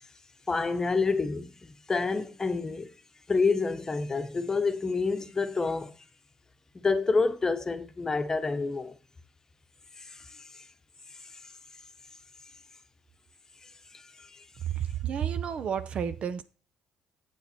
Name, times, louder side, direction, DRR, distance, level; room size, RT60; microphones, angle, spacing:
voice 1, 0.5-2.9 3.3-5.9 6.7-8.9 10.0-10.6 11.3-11.4 13.6-14.4, left 4 dB, 25° left, 0.9 m, -28 dB
voice 2, 14.6-16.4, right 8 dB, 50° right, 0.7 m, -31 dB
7.7 x 7.0 x 4.3 m
cardioid pair, 95°, 2 cm